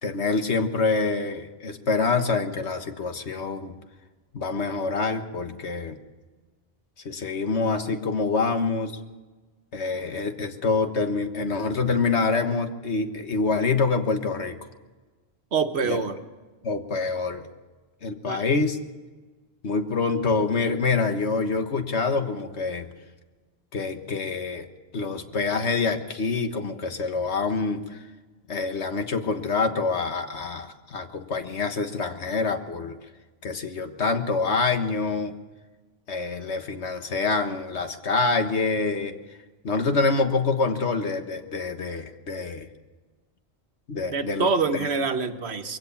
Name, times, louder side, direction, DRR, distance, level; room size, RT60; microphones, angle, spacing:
voice 1, 0.0-3.8 4.3-6.0 7.0-9.0 9.7-14.6 15.8-16.0 16.6-17.5 18.0-18.8 19.6-22.9 23.7-24.7 24.9-28.0 28.5-32.9 33.4-35.3 36.1-39.1 39.6-42.7 43.9-44.5 44.8-44.9, left 4 dB, 85° left, 7 dB, 1.7 m, -26 dB
voice 2, 15.5-16.2 18.2-18.4 44.1-45.8, right 4 dB, 75° right, 8 dB, 1.5 m, -25 dB
22.0 x 16.5 x 7.2 m, 1.3 s
omnidirectional pair, 1.1 m